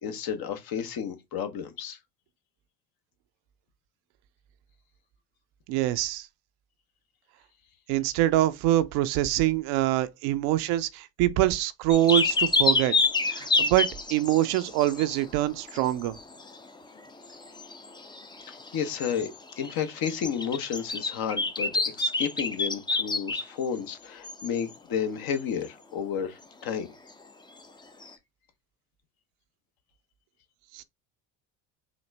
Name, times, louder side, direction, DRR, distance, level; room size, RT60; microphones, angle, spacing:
voice 1, 0.0-2.0 18.5-21.7 22.0-26.9, left 7 dB, 55° left, 1.0 m, -32 dB
voice 2, 5.7-6.3 7.9-12.9 13.3-16.2 30.7-30.8, right 14 dB, 60° right, 0.6 m, -25 dB
sound 1, 11.9-15.4 15.7-16.6 17.0-17.1 17.2-23.7 24.2-24.6 28.0-28.1, left 3 dB, 10° left, 0.5 m, -28 dB
4.0 x 2.5 x 3.2 m
hypercardioid pair, 75°, 44 cm